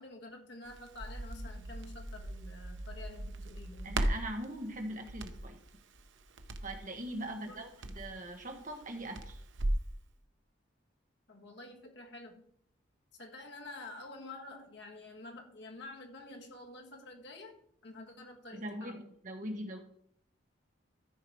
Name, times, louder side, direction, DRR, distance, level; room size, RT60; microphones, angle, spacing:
voice 1, 0.0-4.1 7.2-7.6 11.3-12.5 13.2-19.1, left 2 dB, 60° left, 2 dB, 1.6 m, -49 dB
Crackle, 0.7-9.9, right 1 dB, 70° right, 0.8 m, -39 dB
voice 2, 3.8-5.6 6.6-9.4 18.5-19.8, right 1 dB, 40° right, 3 dB, 1.5 m, -41 dB
13.5 x 4.8 x 4.9 m, 0.67 s
head